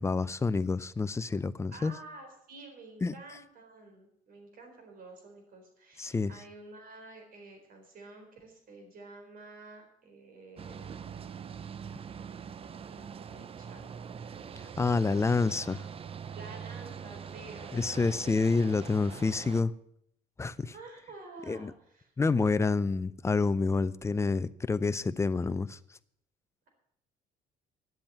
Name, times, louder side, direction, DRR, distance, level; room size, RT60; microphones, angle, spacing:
voice 1, 0.0-1.9 3.0-3.1 6.0-6.3 14.8-15.8 17.7-19.7 20.4-20.7 21.5-21.7 22.2-25.8, left 4 dB, 15° left, 0.5 m, -28 dB
voice 2, 1.7-11.1 12.9-13.9 16.4-18.1 18.8-18.9 20.5-22.0, right 2 dB, 55° right, 4.2 m, -50 dB
sound 1, 10.6-19.6, right 7 dB, 35° right, 0.6 m, -43 dB
10.5 x 7.7 x 8.7 m
cardioid pair, 110°, 17 cm